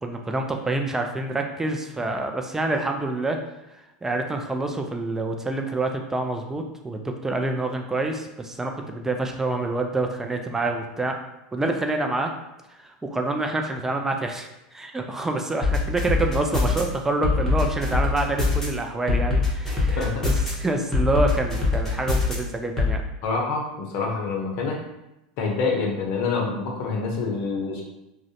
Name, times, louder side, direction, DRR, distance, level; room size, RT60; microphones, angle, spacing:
voice 1, 0.0-3.4 4.0-11.2 11.5-12.3 12.8-23.0, right 2 dB, 10° right, 4 dB, 0.3 m, -27 dB
sound 1, 15.6-16.8 17.2-18.7 19.1-20.5 20.9-22.3 22.8-22.9, left 3 dB, 10° left, 0.9 m, -22 dB
voice 2, 20.0-20.3 23.2-24.8 25.4-27.8, left 4 dB, 55° left, 0 dB, 0.6 m, -26 dB
2.4 x 2.1 x 2.6 m, 0.92 s
hypercardioid pair, 105°, 4 cm